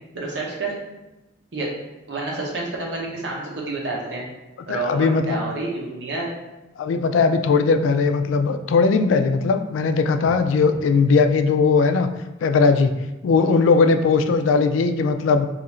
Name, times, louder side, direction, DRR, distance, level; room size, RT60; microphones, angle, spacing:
voice 1, 0.1-0.7 1.5-1.7 2.1-4.3 4.7-6.3, right 2 dB, 70° right, -2 dB, 0.8 m, -28 dB
voice 2, 4.7-5.4 6.8-12.1 12.4-12.9 13.2-15.5, left 4 dB, 90° left, 9 dB, 0.3 m, -19 dB
2.8 x 2.4 x 4.2 m, 1.0 s
head